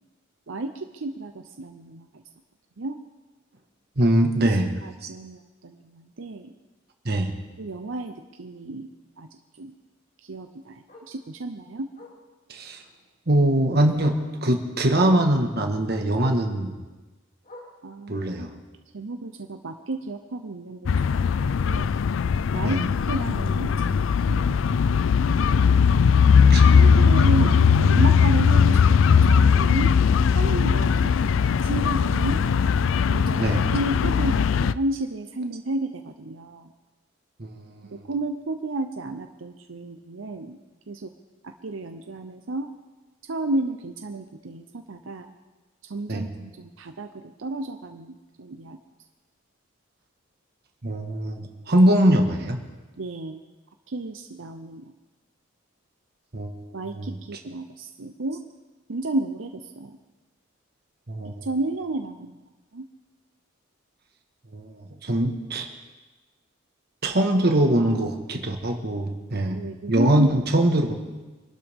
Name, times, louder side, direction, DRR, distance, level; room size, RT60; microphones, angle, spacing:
voice 1, 0.5-2.2 2.8-3.0 4.8-6.5 7.6-8.9 9.2-9.3 9.6-9.7 10.2-11.9 17.8-18.2 18.9-21.9 22.5-24.5 26.4-29.9 30.3-32.4 33.1-36.7 37.9-40.6 40.9-41.1 41.4-42.7 43.2-45.3 45.8-48.8 53.0-53.4 53.9-54.9 56.7-58.4 58.9-60.0 61.4-62.4 62.7-62.8 69.5-70.7, right 2 dB, 85° right, 6 dB, 0.7 m, -32 dB
voice 2, 3.9-5.1 7.0-7.3 12.5-12.8 13.3-16.8 18.1-18.5 22.6-22.8 26.5-26.7 26.9-27.1 27.4-27.5 33.4-33.7 37.4-38.1 46.1-46.2 50.8-52.6 56.3-56.6 56.9-57.1 61.1-61.5 64.5-65.7 67.0-69.6 69.9-70.9, right 1 dB, 55° right, 4 dB, 1.6 m, -22 dB
Bark, 4.4-4.6 5.0-5.1 5.5-5.6 5.9-6.0 7.4-7.5 10.0-10.1 10.9-11.2 11.9-12.2 13.4-13.5 13.9-14.3 15.0-15.4 16.1-16.5 17.4-17.9 18.9-19.0, left 2 dB, 45° left, 3.0 m, -45 dB
sound 1, 20.9-34.7, left 6 dB, 80° left, 0.4 m, -19 dB
25.0 x 12.0 x 3.7 m, 1.2 s
head